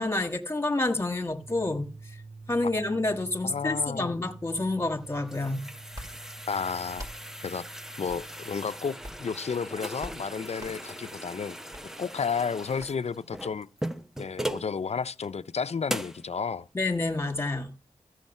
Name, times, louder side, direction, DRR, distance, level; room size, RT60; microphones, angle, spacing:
voice 1, 0.0-1.9 2.5-5.6 16.7-17.7, left 2 dB, 20° left, 1.5 m, -28 dB
sound 1, 1.3-13.2, right 3 dB, 50° right, 4.4 m, -50 dB
voice 2, 3.4-4.2 6.5-7.1 7.4-7.6 8.0-11.6 12.0-13.7 14.2-16.7, left 6 dB, 55° left, 0.5 m, -32 dB
sound 2, 4.9-14.7 15.2-15.3 15.9-16.2, right 1 dB, 5° right, 0.7 m, -39 dB
sound 3, 5.9-6.1 6.9-7.2 8.1-8.2 9.0-9.3 10.0-10.2 10.6-10.8 11.7-11.8 12.8-12.9, equal, 30° right, 2.5 m, -42 dB
14.5 x 6.4 x 5.3 m
wide cardioid pair, 95°, 13 cm